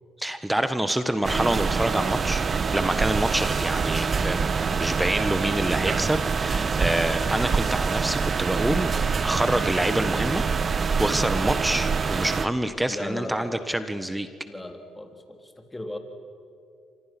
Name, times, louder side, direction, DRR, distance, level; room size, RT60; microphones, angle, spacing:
voice 1, 0.2-2.4 2.7-8.9 9.2-10.5 11.0-14.3, right 1 dB, 10° right, 11 dB, 1.4 m, -26 dB
sound 1, 1.2-12.5, right 5 dB, 40° right, 1.1 m, -25 dB
voice 2, 12.8-13.8 14.5-16.0, left 1 dB, 15° left, 5 dB, 3.5 m, -37 dB
29.5 x 25.5 x 6.1 m, 2.4 s
supercardioid pair, 65°, 0 cm